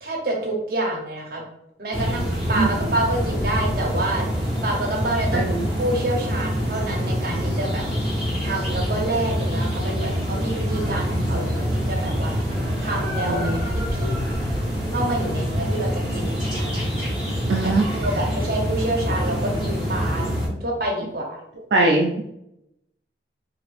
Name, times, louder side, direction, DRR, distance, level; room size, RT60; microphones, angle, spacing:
voice 1, 0.0-1.4 1.8-5.5 5.8-7.8 8.4-12.3 12.8-14.1 14.9-16.8 17.6-20.2 20.6-21.4, right 1 dB, 55° right, -1 dB, 0.9 m, -28 dB
sound 1, 1.9-20.5, equal, 5° right, 1.3 m, -25 dB
voice 2, 5.3-5.7 13.3-13.6 17.5-17.8 21.7-22.2, right 2 dB, 75° right, -1 dB, 0.4 m, -21 dB
2.8 x 2.5 x 3.2 m, 0.81 s
head